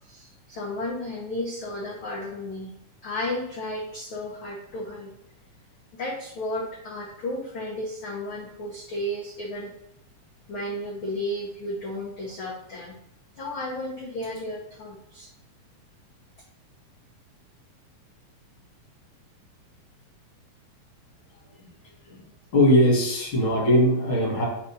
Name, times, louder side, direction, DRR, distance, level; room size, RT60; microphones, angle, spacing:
voice 1, 0.0-2.7 3.0-5.1 5.9-9.7 10.5-13.0 13.3-15.3, left 1 dB, 90° left, -2 dB, 1.1 m, -33 dB
voice 2, 22.5-24.5, equal, 45° left, -3 dB, 2.4 m, -20 dB
4.8 x 4.2 x 5.4 m, 0.79 s
omnidirectional pair, 3.6 m